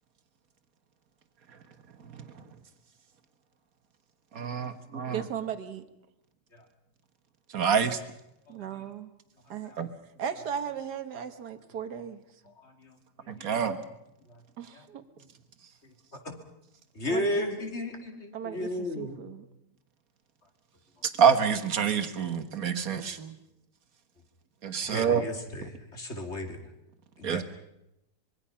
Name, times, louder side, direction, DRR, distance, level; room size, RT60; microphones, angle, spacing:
voice 1, 4.3-5.2 7.5-8.0 9.8-9.9 13.3-13.8 21.2-23.2 24.6-25.3 27.2-27.4, right 7 dB, 60° right, 9 dB, 1.8 m, -26 dB
voice 2, 5.1-5.8 8.5-9.1 9.5-9.7 10.2-12.2 14.6-15.0 17.1-17.5 18.3-19.5 22.9-23.4, right 8 dB, 75° right, 10 dB, 1.9 m, -37 dB
voice 3, 12.6-13.0 13.4-13.5 14.7-14.8 15.8-15.9 16.2-16.3 16.9-19.2 24.8-26.6 27.2-27.4, left 1 dB, 40° left, 4 dB, 2.8 m, -34 dB
25.0 x 22.5 x 5.7 m, 0.85 s
omnidirectional pair, 1.7 m